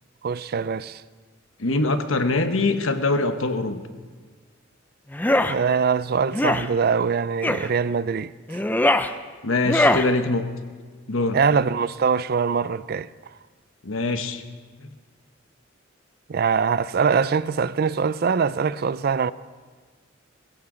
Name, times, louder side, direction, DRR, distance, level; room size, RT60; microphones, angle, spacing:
voice 1, 0.2-1.0 5.4-8.6 11.3-13.1 16.3-19.3, right 6 dB, 50° right, 0.4 m, -23 dB
voice 2, 1.6-3.8 9.4-10.4 11.1-11.4 13.8-14.4 14.8-14.9, left 2 dB, 85° left, 1.1 m, -23 dB
sound 1, 5.1-5.5 6.3-6.7 7.4-7.7 8.5-9.1 9.6-10.1, left 1 dB, 10° left, 0.5 m, -21 dB
21.0 x 16.5 x 3.9 m
head